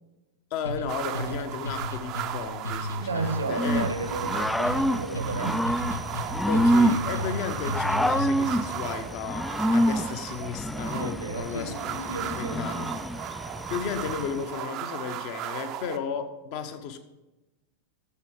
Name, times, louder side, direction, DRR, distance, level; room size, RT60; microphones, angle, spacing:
voice 1, 0.5-3.8 6.5-12.0 12.3-12.8 13.7-17.0, left 7 dB, 45° left, 8 dB, 1.1 m, -34 dB
sound 1, 0.6-8.6, left 1 dB, 75° left, 1.1 m, -35 dB
sound 2, 0.9-16.0, right 12 dB, 40° right, 0.6 m, -36 dB
voice 2, 3.0-5.7 10.9-12.9, right 3 dB, 75° right, 8 dB, 1.2 m, -33 dB
Growling / Cricket, 3.5-14.5, equal, 5° left, 0.4 m, -27 dB
13.0 x 7.1 x 5.0 m, 1.1 s
figure-of-eight pair, 90°, 0 cm